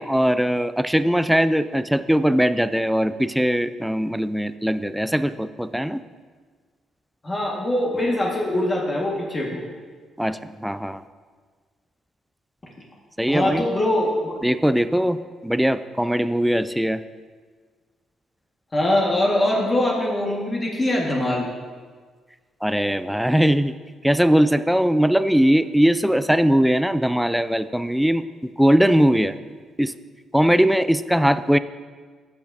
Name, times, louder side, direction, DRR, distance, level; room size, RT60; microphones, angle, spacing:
voice 1, 0.0-6.0 10.2-11.0 13.2-13.7 14.4-17.0 22.6-23.7 24.0-29.3 29.8-29.9 30.3-31.6, equal, ahead, 12 dB, 0.3 m, -20 dB
voice 2, 7.2-9.6 13.3-14.4 18.7-21.5, left 1 dB, 25° left, -2 dB, 1.5 m, -22 dB
14.5 x 5.8 x 2.6 m, 1.5 s
cardioid pair, 90°, 0 cm